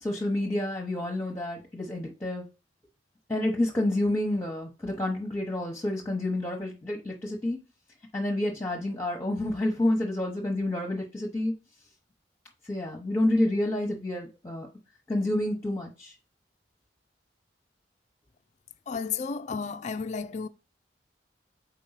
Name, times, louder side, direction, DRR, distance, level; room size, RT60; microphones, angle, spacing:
voice 1, 0.0-2.4 3.3-7.6 8.1-11.5 12.7-14.7 15.1-16.1, left 1 dB, 15° left, 0.9 m, -29 dB
voice 2, 18.9-20.5, left 5 dB, 40° left, 0.3 m, -32 dB
4.5 x 4.3 x 5.6 m
head